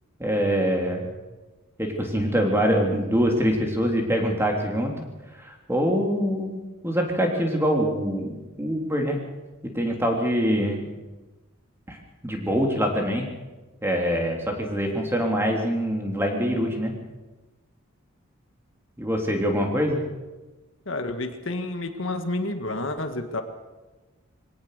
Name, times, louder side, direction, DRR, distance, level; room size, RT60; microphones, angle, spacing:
voice 1, 0.2-1.1 1.8-4.9 5.4-9.2 9.7-10.9 11.9-12.0 12.2-13.3 13.8-17.0 19.0-20.0, equal, 10° right, 1 dB, 3.2 m, -24 dB
voice 2, 20.9-23.4, left 2 dB, 60° left, 7 dB, 1.7 m, -29 dB
23.0 x 17.5 x 6.7 m, 1.2 s
head